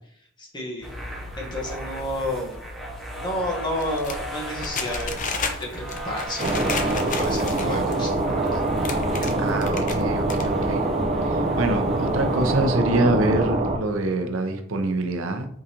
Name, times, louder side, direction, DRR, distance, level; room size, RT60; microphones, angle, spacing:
voice 1, 0.4-0.9 1.4-2.5 3.2-6.9 7.2-8.6, left 1 dB, 20° left, -1 dB, 1.2 m, -31 dB
sound 1, 0.8-12.7, right 1 dB, ahead, 0.8 m, -37 dB
sound 2, 3.8-7.9 8.4-8.5 8.7-10.0 10.3-10.8, left 4 dB, 40° left, 0.6 m, -32 dB
sound 3, 6.4-13.8, right 2 dB, 35° right, 0.6 m, -24 dB
voice 2, 9.1-10.8 11.3-15.5, right 2 dB, 85° right, 6 dB, 0.7 m, -25 dB
4.8 x 3.8 x 2.9 m, 0.65 s
head